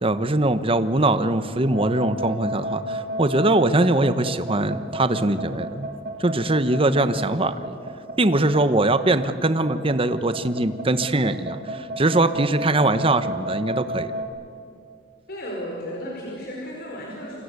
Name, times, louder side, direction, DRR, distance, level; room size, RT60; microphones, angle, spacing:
voice 1, 0.0-5.9 6.2-7.8 8.2-11.6 12.0-14.1, right 2 dB, 30° right, 11 dB, 1.1 m, -21 dB
sound 1, 1.6-14.2, right 1 dB, 60° right, 4.0 m, -31 dB
voice 2, 15.3-17.4, equal, 60° left, -2 dB, 5.0 m, -34 dB
28.5 x 25.0 x 8.3 m, 2.3 s
head